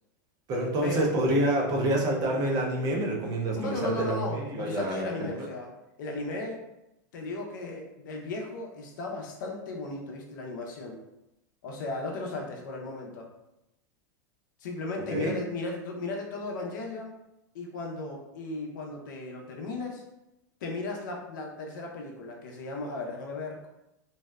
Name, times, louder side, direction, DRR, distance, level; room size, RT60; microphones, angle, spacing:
voice 1, 0.5-5.5 15.1-15.4, right 1 dB, 35° right, -1 dB, 0.6 m, -27 dB
voice 2, 3.5-5.7 6.0-6.6 7.1-11.0 11.6-13.3 14.6-17.2 17.5-20.0 20.6-23.7, left 2 dB, 70° left, 0 dB, 0.6 m, -36 dB
2.6 x 2.0 x 2.3 m, 0.90 s
hypercardioid pair, 110°, 10 cm